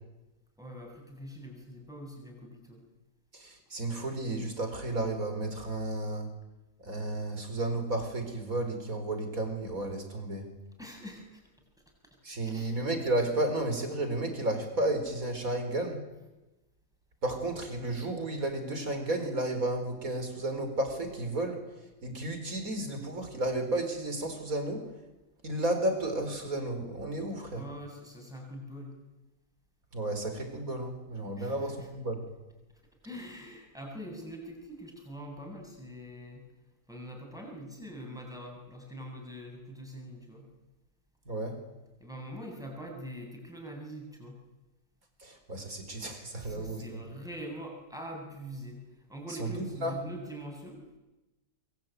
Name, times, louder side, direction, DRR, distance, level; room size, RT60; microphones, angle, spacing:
voice 1, 0.6-2.8 10.8-11.4 12.4-12.8 27.5-29.0 31.4-31.9 33.0-36.4 36.9-40.5 42.0-44.4 46.3-50.9, equal, ahead, 1 dB, 7.6 m, -43 dB
voice 2, 3.3-6.3 6.8-10.5 12.2-16.0 17.2-21.6 22.0-24.9 25.4-27.6 29.9-32.3 41.2-41.6 45.2-47.0 49.4-50.0, right 1 dB, 70° right, 7 dB, 4.9 m, -32 dB
25.0 x 23.0 x 9.4 m, 1.0 s
omnidirectional pair, 1.5 m